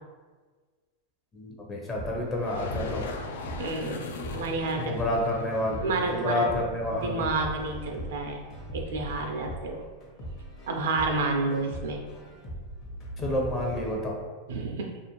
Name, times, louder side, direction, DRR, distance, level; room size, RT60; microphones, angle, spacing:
voice 1, 1.3-3.1 4.8-5.8 6.1-7.2 13.2-14.2, left 1 dB, 25° left, -1 dB, 0.6 m, -29 dB
sound 1, 1.9-13.9, right 1 dB, 45° left, 0.9 m, -41 dB
sound 2, 2.3-8.0, left 4 dB, 80° left, 0.3 m, -40 dB
voice 2, 3.6-4.0 4.3-5.0 5.8-6.5 6.9-8.4 8.7-9.8 10.7-12.0 14.5-15.0, right 3 dB, 85° right, 2 dB, 0.4 m, -29 dB
2.4 x 2.4 x 2.9 m, 1.4 s
supercardioid pair, 125°, 0 cm